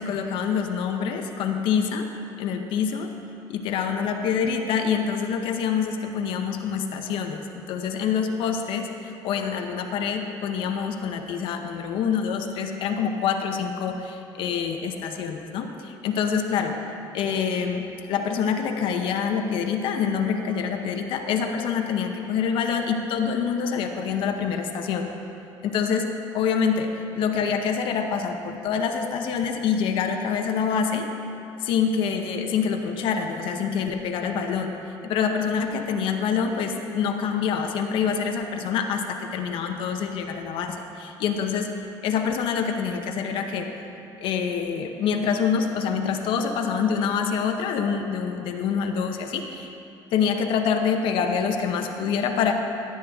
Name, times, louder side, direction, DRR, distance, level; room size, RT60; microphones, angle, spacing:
voice 1, 0.0-2.1 2.4-3.1 3.5-16.8 17.1-25.1 25.6-31.1 31.6-34.7 35.0-41.7 42.0-43.7 44.2-49.7 50.1-52.5, left 6 dB, 70° left, 4 dB, 0.8 m, -26 dB
15.5 x 8.6 x 3.5 m, 2.8 s
cardioid pair, 135°, 9 cm